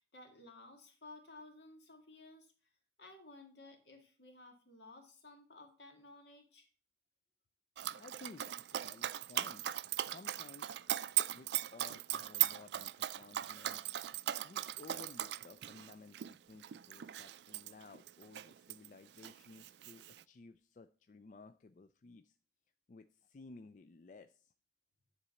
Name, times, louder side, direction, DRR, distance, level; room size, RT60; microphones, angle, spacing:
voice 1, 0.0-2.5 3.0-6.7, left 2 dB, 75° left, 3 dB, 2.1 m, -56 dB
Dog, 7.8-18.9 19.2-20.2, right 12 dB, 75° right, 0.3 m, -38 dB
voice 2, 7.9-9.7 10.0-10.8 11.3-13.8 14.4-22.4 22.9-24.5, left 3 dB, 45° left, 9 dB, 0.4 m, -56 dB
10.0 x 4.0 x 6.9 m, 0.40 s
head